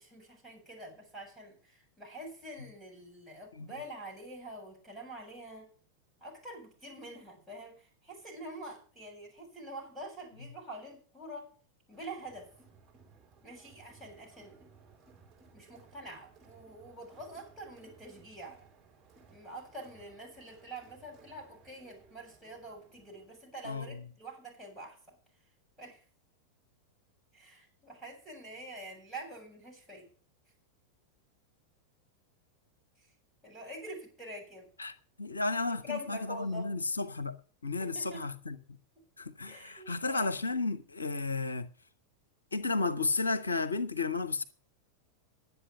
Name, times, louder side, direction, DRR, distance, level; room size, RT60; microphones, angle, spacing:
voice 1, 0.0-5.7 6.2-11.5 11.9-12.5 13.4-14.6 15.5-18.6 19.3-25.2 25.8-26.0 27.3-30.1 33.4-34.7 35.7-36.7 37.8-38.2 39.4-40.4, right 1 dB, 5° right, 7.8 m, -46 dB
Crowd, 11.9-23.5, right 5 dB, 25° right, 4.5 m, -61 dB
voice 2, 34.8-37.3 37.6-38.6 39.2-41.7 42.5-44.4, left 3 dB, 75° left, 0.7 m, -33 dB
11.5 x 8.1 x 8.7 m
figure-of-eight pair, 90°, 0 cm